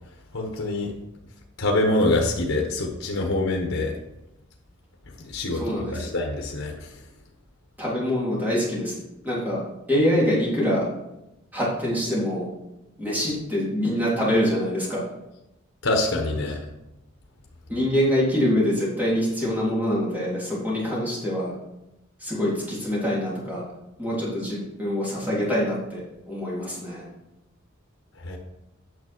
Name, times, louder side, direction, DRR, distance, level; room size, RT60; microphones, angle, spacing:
voice 1, 0.3-0.9 1.6-3.9 5.3-5.6 5.9-6.9 15.8-16.6 28.2-28.4, left 2 dB, 75° left, 1 dB, 1.3 m, -25 dB
voice 2, 5.5-6.1 7.8-8.9 9.2-9.6 9.9-10.9 11.5-12.5 13.0-15.1 17.7-21.5 22.2-23.6 24.0-27.0, equal, 10° right, -7 dB, 3.5 m, -25 dB
9.1 x 6.5 x 4.5 m, 0.91 s
head